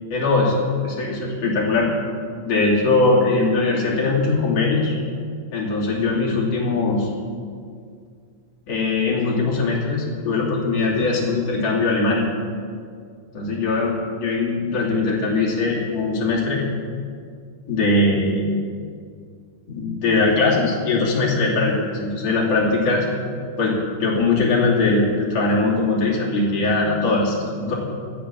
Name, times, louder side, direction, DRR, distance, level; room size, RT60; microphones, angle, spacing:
voice 1, 0.1-0.5 0.8-1.9 2.4-4.9 5.5-7.1 8.7-12.3 13.3-13.9 14.2-16.6 17.7-18.5 19.7-23.1 23.6-27.7, left 3 dB, 55° left, -5 dB, 4.0 m, -21 dB
13.0 x 10.5 x 8.8 m, 2.1 s
omnidirectional pair, 3.4 m